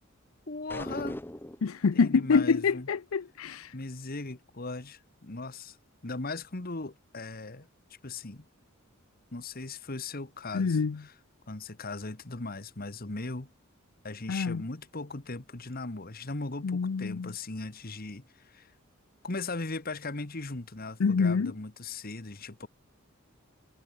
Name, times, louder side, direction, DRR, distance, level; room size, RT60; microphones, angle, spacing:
voice 1, 0.5-1.2 1.9-2.9 3.7-5.8 6.0-7.7 8.0-8.5 9.3-11.1 11.5-13.5 14.0-18.7 19.2-22.7, left 3 dB, 45° left, 1.5 m, -38 dB
sound 1, 0.7-1.7, left 1 dB, 10° left, 1.0 m, -38 dB
voice 2, 1.6-3.7 10.5-11.0 14.3-14.6 16.6-17.3 21.0-21.5, left 5 dB, 90° left, 0.5 m, -26 dB
head